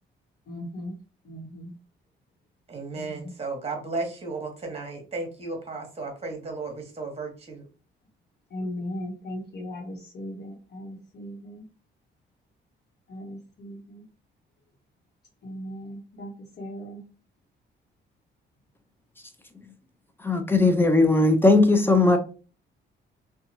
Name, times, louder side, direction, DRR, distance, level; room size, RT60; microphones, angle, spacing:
voice 1, 0.5-0.9 1.2-1.7 2.9-3.3 8.5-11.6 13.1-14.0 15.4-16.3 16.6-17.0, left 1 dB, 55° left, 1.0 m, -37 dB
voice 2, 2.7-7.7, right 3 dB, 30° right, 1.2 m, -34 dB
voice 3, 20.2-22.2, left 2 dB, 10° left, 0.5 m, -18 dB
2.8 x 2.3 x 2.7 m
cardioid pair, 90°, 20 cm